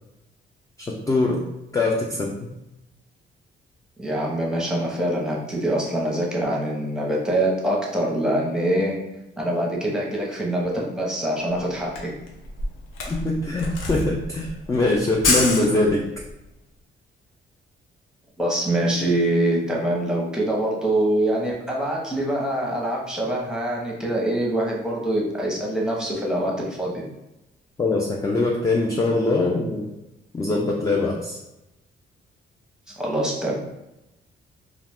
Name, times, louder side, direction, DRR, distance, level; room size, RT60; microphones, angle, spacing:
voice 1, 0.8-1.4 1.7-2.5 13.1-16.0 27.8-29.9 30.3-31.4, left 2 dB, 15° left, -1 dB, 0.4 m, -22 dB
voice 2, 4.0-9.0 9.4-12.1 18.4-27.0 33.0-33.5, right 1 dB, 5° right, -3 dB, 0.8 m, -24 dB
Camera, 11.5-11.6 11.8-16.3, left 2 dB, 85° left, 0.6 m, -27 dB
2.4 x 2.3 x 3.4 m, 0.94 s
cardioid pair, 90°, 20 cm